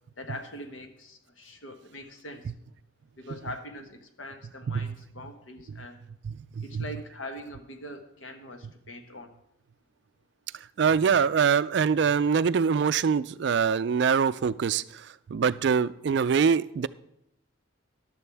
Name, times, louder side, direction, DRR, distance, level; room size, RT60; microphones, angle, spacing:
voice 1, 0.2-2.5 3.2-6.0 6.6-9.3, left 1 dB, 75° left, 6 dB, 1.3 m, -42 dB
voice 2, 6.2-6.8 10.8-16.9, right 6 dB, 55° right, 16 dB, 0.3 m, -24 dB
14.0 x 11.5 x 3.4 m, 0.77 s
head